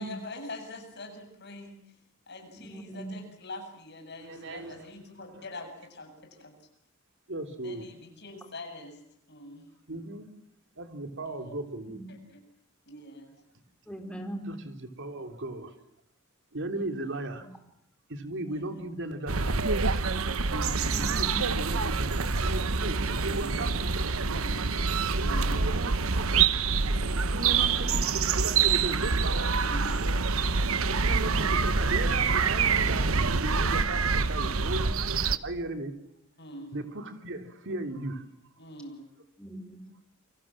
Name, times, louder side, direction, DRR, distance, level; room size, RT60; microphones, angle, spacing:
voice 1, 0.0-6.5 7.6-9.0 9.3-9.7 11.2-11.6 12.1-12.4 12.9-13.4 15.1-15.3 16.7-17.2 18.5-19.0 20.5-21.0 23.2-23.8 24.2-24.7 25.2-25.7 29.6-30.3 36.4-36.7 38.6-39.1, left 1 dB, 55° left, 4 dB, 7.9 m, -44 dB
voice 2, 2.6-3.1 11.8-12.1 13.9-14.5 17.4-17.5 20.9-21.5 39.4-39.8, right 1 dB, 5° left, 5 dB, 4.1 m, -40 dB
voice 3, 4.2-4.7 7.3-7.8 9.9-10.3 10.8-12.0 14.5-14.6 15.0-15.7 16.5-17.5 18.1-19.6 20.4-24.5 25.1-26.3 27.3-28.0 28.3-29.5 30.8-35.0 35.4-35.9 36.7-38.2, right 2 dB, 60° right, 6 dB, 3.4 m, -36 dB
sound 1, 19.3-35.4, right 5 dB, 80° right, 1.2 m, -26 dB
29.0 x 24.5 x 7.5 m, 0.72 s
head